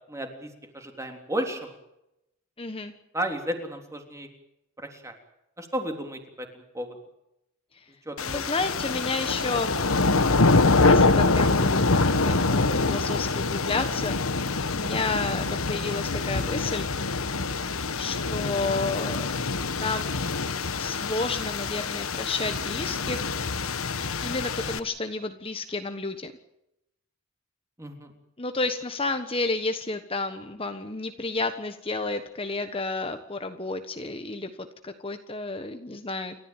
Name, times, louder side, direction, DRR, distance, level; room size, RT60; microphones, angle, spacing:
voice 1, 0.1-1.7 3.1-4.3 4.8-5.1 5.6-7.0 8.1-8.5 27.8-28.1, right 1 dB, 15° right, 4 dB, 3.5 m, -33 dB
voice 2, 2.6-2.9 8.2-9.7 10.8-16.9 18.0-19.3 19.7-20.1 20.8-23.5 24.2-26.3 28.4-36.4, left 3 dB, 25° left, 8 dB, 1.3 m, -31 dB
sound 1, 8.2-24.8, left 3 dB, 90° left, 1.5 m, -25 dB
29.5 x 14.0 x 9.1 m, 0.85 s
head